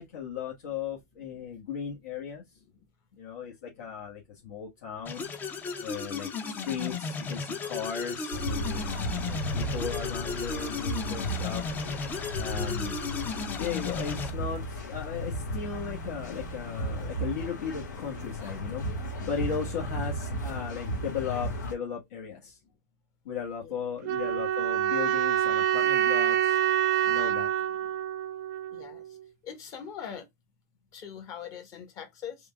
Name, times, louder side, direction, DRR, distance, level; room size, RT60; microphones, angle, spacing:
voice 1, 0.0-2.4 3.2-5.2 5.8-8.9 9.3-11.6 12.4-12.9 13.6-18.8 19.2-22.5 23.2-26.5 27.1-27.5, left 7 dB, 70° left, 1.3 m, -36 dB
sound 1, 5.1-14.3, left 5 dB, 20° left, 0.6 m, -35 dB
sound 2, 8.3-21.7, equal, 85° left, 1.6 m, -35 dB
sound 3, 24.0-29.1, right 11 dB, 60° right, 0.6 m, -26 dB
voice 2, 28.7-29.0 29.4-30.2 30.9-32.4, left 8 dB, 35° left, 1.3 m, -41 dB
3.7 x 2.3 x 3.4 m
hypercardioid pair, 135°, 10 cm